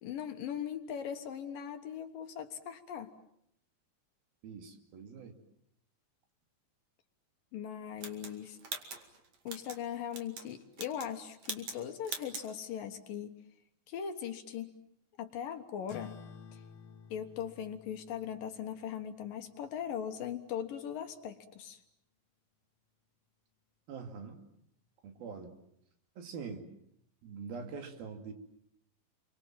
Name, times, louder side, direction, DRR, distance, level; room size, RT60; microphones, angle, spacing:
voice 1, 0.0-3.1 7.5-8.6 9.4-13.4 13.9-14.8 15.2-16.1 16.5-16.6 17.1-21.8, left 9 dB, 70° left, 6 dB, 3.0 m, -40 dB
voice 2, 4.4-5.4 23.9-24.4 25.0-25.5 26.2-26.6 27.2-28.3, right 5 dB, 80° right, 5 dB, 4.3 m, -44 dB
sound 1, 8.0-9.8 10.1-10.5 10.7-11.1 11.4-11.8 12.0-12.5, right 5 dB, 50° right, 3.3 m, -42 dB
sound 2, 15.9-20.7, left 7 dB, 55° left, 2.6 m, -53 dB
30.0 x 24.0 x 7.5 m, 0.72 s
omnidirectional pair, 4.2 m